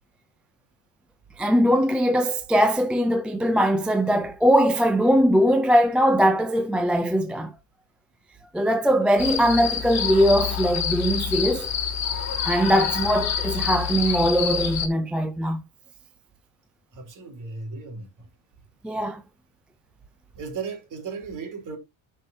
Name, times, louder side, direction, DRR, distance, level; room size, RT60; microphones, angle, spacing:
voice 1, 1.4-7.5 8.5-11.7 12.4-15.6 18.8-19.2, equal, ahead, 0.4 m, -21 dB
sound 1, 9.2-14.9, left 8 dB, 35° left, 2.4 m, -27 dB
voice 2, 16.9-18.1 20.3-21.8, right 5 dB, 40° right, 3.3 m, -35 dB
10.5 x 5.5 x 2.7 m
cardioid pair, 145°, 47 cm